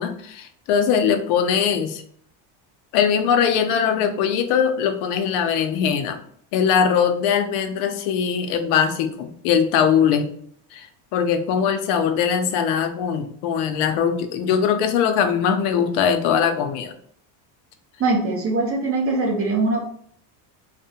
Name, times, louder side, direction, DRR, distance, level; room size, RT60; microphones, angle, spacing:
voice 1, 0.0-2.0 2.9-6.2 6.5-10.3 10.7-10.9 11.1-16.9, left 7 dB, 75° left, 7 dB, 0.6 m, -21 dB
voice 2, 18.0-19.8, right 3 dB, 30° right, 0 dB, 0.5 m, -22 dB
2.6 x 2.1 x 2.7 m, 0.63 s
cardioid pair, 130°, 49 cm